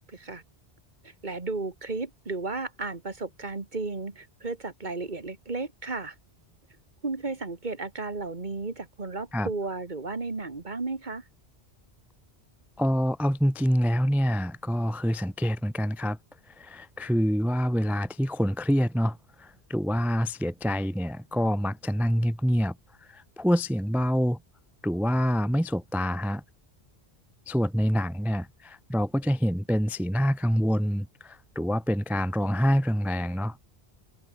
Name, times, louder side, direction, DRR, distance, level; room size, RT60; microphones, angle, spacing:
voice 1, 0.1-0.4 1.0-6.2 7.0-11.2, right 3 dB, 45° right, 2.1 m, -34 dB
voice 2, 12.8-16.2 16.6-22.8 23.1-24.4 24.8-26.4 27.5-33.6, equal, ahead, 0.4 m, -26 dB
omnidirectional pair, 1.1 m